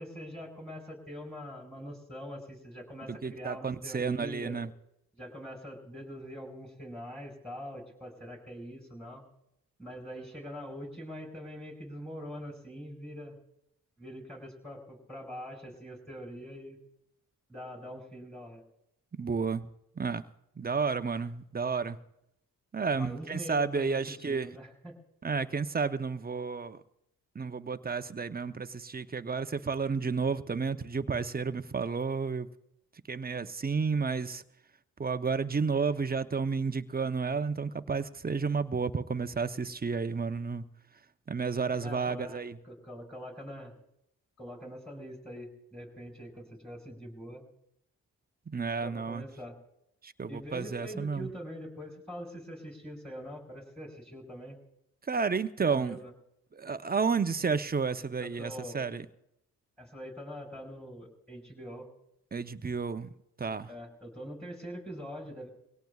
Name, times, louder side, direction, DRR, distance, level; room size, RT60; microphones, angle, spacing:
voice 1, 0.0-4.6 5.1-9.2 9.8-13.3 14.0-16.8 17.5-18.6 22.9-25.0 41.8-43.7 44.4-47.4 48.8-49.6 50.3-54.6 55.6-56.1 58.2-58.9 59.8-61.9 63.7-65.5, equal, ahead, 1 dB, 5.2 m, -43 dB
voice 2, 3.1-4.7 19.2-19.7 20.0-20.2 20.6-22.0 22.7-24.5 25.2-26.8 27.3-32.5 33.1-34.4 35.0-40.6 41.3-42.6 48.5-49.2 50.0-51.3 55.1-56.0 56.5-59.0 62.3-63.1 63.4-63.7, right 5 dB, 25° right, 11 dB, 0.7 m, -31 dB
23.5 x 17.5 x 2.4 m, 0.80 s
supercardioid pair, 50°, 36 cm